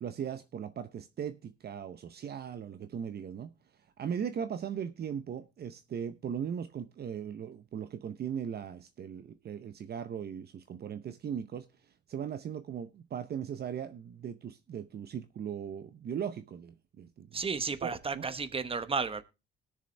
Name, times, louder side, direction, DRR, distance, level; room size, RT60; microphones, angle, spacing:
voice 1, 0.0-3.5 4.0-11.7 12.1-17.3 17.8-18.2, right 8 dB, 55° right, 0.7 m, -38 dB
voice 2, 17.3-19.2, right 5 dB, 30° right, 1.0 m, -33 dB
20.0 x 6.7 x 3.3 m
cardioid pair, 90°, 20 cm